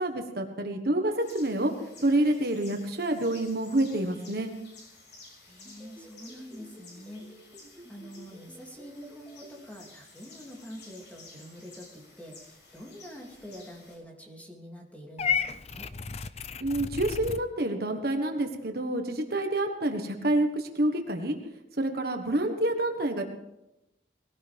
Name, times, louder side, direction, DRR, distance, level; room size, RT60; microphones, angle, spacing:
voice 1, 0.0-1.7 2.0-4.5 16.6-21.4 21.8-23.2, right 1 dB, 60° right, 5 dB, 1.5 m, -28 dB
sound 1, 1.2-14.0, left 3 dB, 80° left, 6.4 m, -53 dB
voice 2, 5.4-7.3 7.9-15.9, equal, 10° left, 0 dB, 2.7 m, -46 dB
sound 2, 5.6-9.5, equal, 10° right, 5.6 m, -51 dB
Purr / Meow, 15.2-17.4, left 6 dB, 35° left, 0.5 m, -32 dB
20.5 x 16.5 x 3.6 m, 0.92 s
head